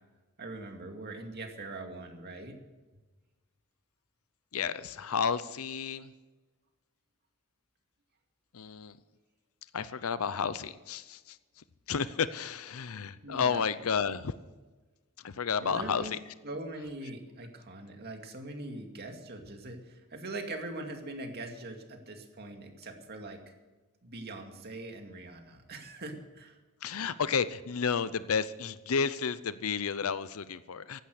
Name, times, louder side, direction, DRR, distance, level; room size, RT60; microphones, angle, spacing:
voice 1, 0.4-2.6 13.2-13.7 15.6-16.2 16.4-23.4 24.0-26.6, right 2 dB, 50° right, 4 dB, 2.3 m, -42 dB
voice 2, 4.5-6.1 8.5-8.9 9.7-11.4 11.9-14.3 15.2-16.2 26.8-31.0, left 6 dB, 70° left, 15 dB, 0.6 m, -31 dB
15.5 x 11.5 x 6.6 m, 1.2 s
head